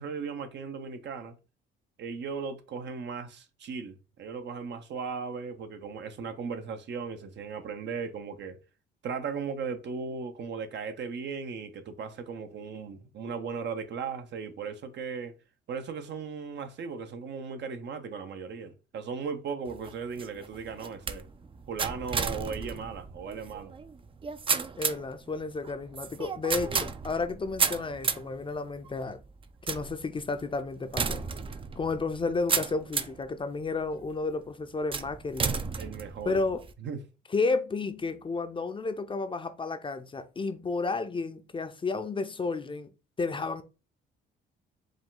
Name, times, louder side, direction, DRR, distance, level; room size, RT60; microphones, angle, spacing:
voice 1, 0.0-1.4 2.0-8.6 9.0-15.3 15.7-21.3 21.7-23.7 35.8-36.4 36.8-37.0, right 5 dB, 65° right, 0.7 m, -37 dB
sound 1, 19.7-33.3 33.8-34.3 34.9-36.7, right 5 dB, 25° right, 0.4 m, -33 dB
voice 2, 24.8-29.2 29.7-31.2 31.8-35.6 36.3-36.6 37.3-42.9 43.2-43.6, left 3 dB, 25° left, 0.5 m, -32 dB
5.0 x 2.3 x 3.8 m
cardioid pair, 90°, 20 cm